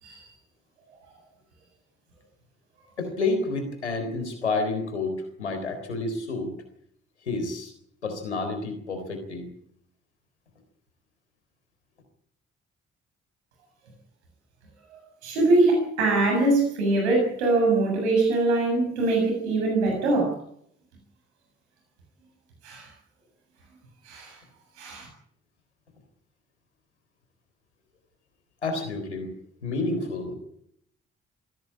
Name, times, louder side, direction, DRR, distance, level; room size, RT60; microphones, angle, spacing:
voice 1, 3.0-6.5 7.3-7.7 8.0-9.5 28.6-29.3 29.6-30.3, left 3 dB, 90° left, 6 dB, 3.9 m, -29 dB
voice 2, 14.9-20.3 22.6-22.9 24.1-24.4 24.8-25.1, right 2 dB, 80° right, 1 dB, 7.4 m, -23 dB
23.0 x 17.0 x 8.7 m, 0.69 s
figure-of-eight pair, 40°, 33 cm